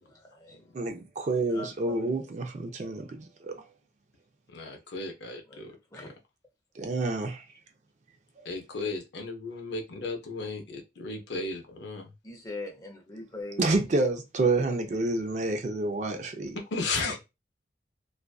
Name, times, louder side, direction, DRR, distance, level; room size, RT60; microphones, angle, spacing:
voice 1, 0.1-0.6 1.5-2.2 3.5-3.6 5.5-6.1 12.2-13.7, left 2 dB, 20° left, 0.5 m, -42 dB
voice 2, 0.7-3.5 6.8-7.4 13.6-16.6, right 2 dB, 40° right, 0.4 m, -28 dB
voice 3, 4.5-5.7 8.4-12.1 16.5-17.2, left 3 dB, 70° left, 0.6 m, -35 dB
2.4 x 2.4 x 2.2 m
head